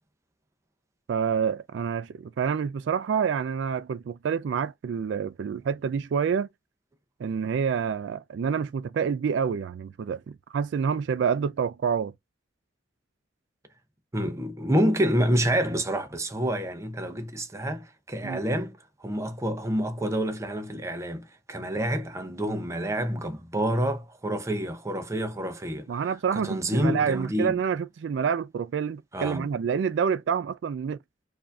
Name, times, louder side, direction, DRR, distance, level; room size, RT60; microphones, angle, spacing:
voice 1, 1.1-6.5 7.2-10.2 10.5-12.1 18.2-18.5 25.9-31.0, right 6 dB, 70° right, 0.3 m, -27 dB
voice 2, 14.1-26.0 26.3-27.6 29.1-29.5, equal, 15° right, 0.6 m, -28 dB
4.7 x 2.6 x 2.3 m
head